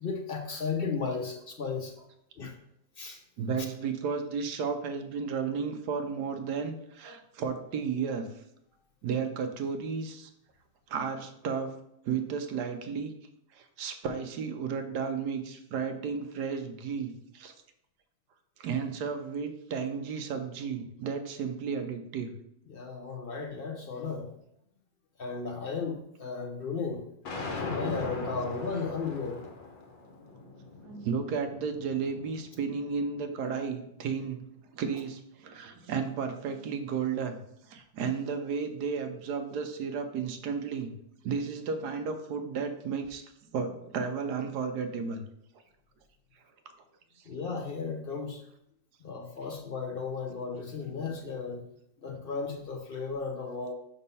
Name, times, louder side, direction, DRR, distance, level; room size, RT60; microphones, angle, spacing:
voice 1, 0.0-1.9 2.4-2.5 3.0-3.2 22.7-24.3 25.2-27.0 27.5-29.4 47.3-48.4 49.0-51.6 52.0-53.7, left 5 dB, 55° left, 2 dB, 0.6 m, -35 dB
voice 2, 3.4-8.3 9.0-10.3 10.9-11.8 12.0-13.1 13.5-17.5 18.6-22.3 30.8-34.4 34.7-37.4 37.6-40.9 41.2-45.2 47.2-47.3, right 6 dB, 70° right, 7 dB, 1.2 m, -33 dB
sound 1, 27.2-33.4, left 3 dB, 85° left, 1.7 m, -40 dB
5.4 x 4.2 x 5.4 m, 0.76 s
omnidirectional pair, 1.9 m